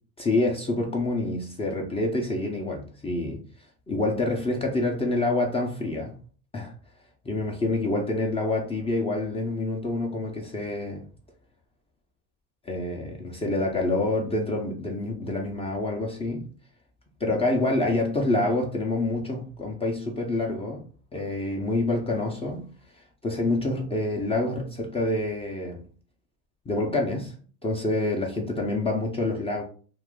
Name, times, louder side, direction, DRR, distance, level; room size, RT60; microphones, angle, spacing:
voice 1, 0.2-3.4 3.9-6.2 6.5-6.7 7.3-11.0 12.7-16.5 17.2-22.7 23.2-25.8 26.7-27.3 27.6-29.6, left 2 dB, 15° left, 0.4 m, -27 dB
2.5 x 2.4 x 3.6 m
supercardioid pair, 100°, 49 cm